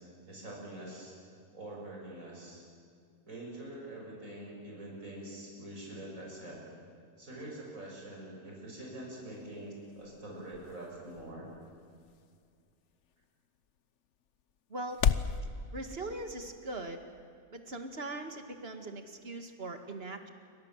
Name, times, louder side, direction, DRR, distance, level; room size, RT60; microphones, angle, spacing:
voice 1, 0.3-1.1 1.5-2.6 3.3-6.6 7.2-11.5, right 1 dB, 65° right, -2 dB, 6.7 m, -45 dB
sound 1, 9.1-15.4, left 7 dB, 55° left, 1.1 m, -37 dB
voice 2, 14.7-15.0 15.7-17.0 17.5-20.3, right 2 dB, 40° right, 6 dB, 2.3 m, -40 dB
28.5 x 24.5 x 7.6 m, 2.3 s
omnidirectional pair, 1.5 m